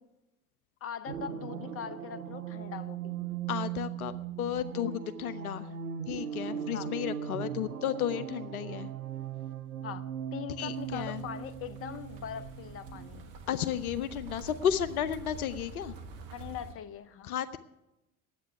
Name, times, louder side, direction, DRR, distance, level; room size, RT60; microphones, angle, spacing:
voice 1, 0.8-3.2 6.7-6.9 9.8-10.0 10.3-13.2 16.3-17.3, left 9 dB, 30° left, 13 dB, 0.8 m, -41 dB
sound 1, 1.1-13.1, right 9 dB, 85° right, 0.6 m, -39 dB
voice 2, 3.5-4.1 4.4-5.7 6.1-8.9 10.6-11.2 13.5-15.9 17.2-17.6, left 10 dB, 75° left, 13 dB, 0.6 m, -33 dB
sound 2, 10.7-16.7, right 3 dB, 55° right, 1.5 m, -47 dB
9.4 x 8.3 x 9.5 m, 0.97 s
figure-of-eight pair, 65°, 44 cm